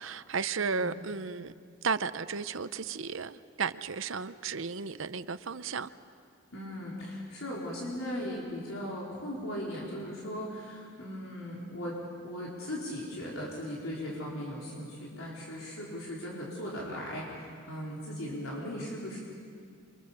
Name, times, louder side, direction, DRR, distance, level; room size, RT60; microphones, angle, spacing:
voice 1, 0.0-1.5 1.8-5.9, right 5 dB, 70° right, 0.8 m, -34 dB
voice 2, 0.5-1.0 6.5-11.9 12.2-19.2, equal, 85° left, 4.5 m, -38 dB
29.0 x 25.0 x 7.0 m
head